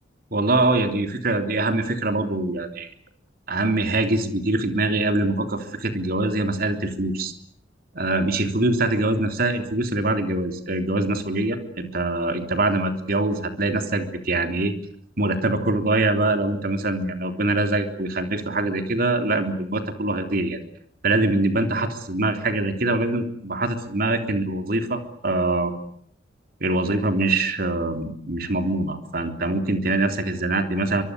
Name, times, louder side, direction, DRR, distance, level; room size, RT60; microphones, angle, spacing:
voice 1, 0.3-2.9 3.5-7.3 7.9-14.7 15.2-20.6 21.0-25.7 26.6-31.0, right 2 dB, 50° right, 7 dB, 3.5 m, -24 dB
24.5 x 23.5 x 9.7 m, 0.65 s
head